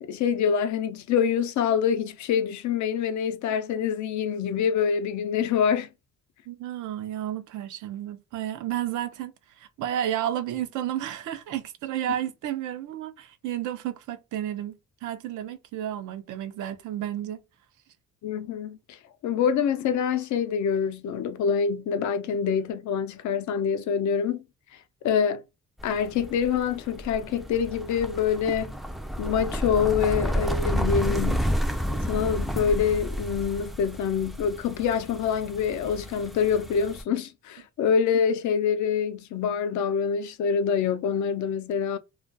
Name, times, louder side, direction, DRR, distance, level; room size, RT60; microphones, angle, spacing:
voice 1, 0.0-5.9 18.2-19.0 19.2-24.4 25.0-25.4 25.8-28.7 29.2-31.5 31.9-42.0, left 7 dB, 70° left, 0.5 m, -26 dB
voice 2, 6.5-17.4, right 11 dB, 80° right, 0.5 m, -32 dB
sound 1, 25.8-37.0, equal, ahead, 0.3 m, -31 dB
2.3 x 2.2 x 2.5 m
cardioid pair, 90°, 30 cm